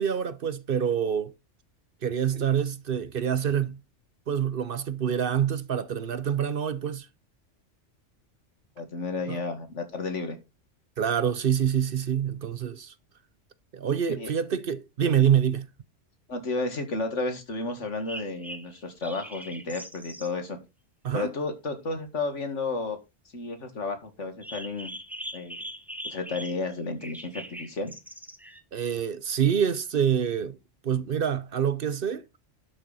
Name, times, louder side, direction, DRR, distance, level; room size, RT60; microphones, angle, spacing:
voice 1, 0.0-1.3 2.0-3.8 4.3-7.1 9.3-9.4 11.0-12.9 13.7-15.7 21.0-21.3 28.7-30.6 30.8-32.2, right 8 dB, 55° right, 0.8 m, -26 dB
voice 2, 8.8-10.4 14.2-14.3 16.3-20.6 21.1-23.0 23.3-24.9 25.3-25.6 26.0-27.9, left 3 dB, 80° left, 2.3 m, -32 dB
sound 1, 18.0-20.3 24.4-26.7 27.0-28.6, equal, ahead, 1.2 m, -41 dB
12.0 x 6.7 x 4.1 m
omnidirectional pair, 1.2 m